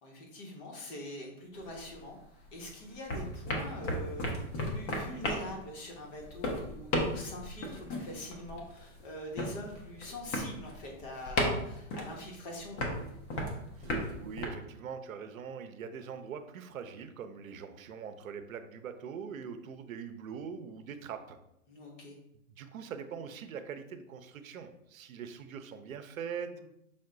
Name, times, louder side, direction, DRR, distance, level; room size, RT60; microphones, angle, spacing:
voice 1, 0.0-13.1 21.7-22.2 26.5-26.6, left 1 dB, 40° left, 0 dB, 1.1 m, -44 dB
sound 1, 1.5-2.6 2.9-14.5, left 1 dB, 15° left, 0.4 m, -35 dB
voice 2, 13.8-21.4 22.5-26.6, right 7 dB, 85° right, 8 dB, 0.7 m, -42 dB
5.4 x 2.2 x 3.8 m, 0.80 s
hypercardioid pair, 135°, 40 cm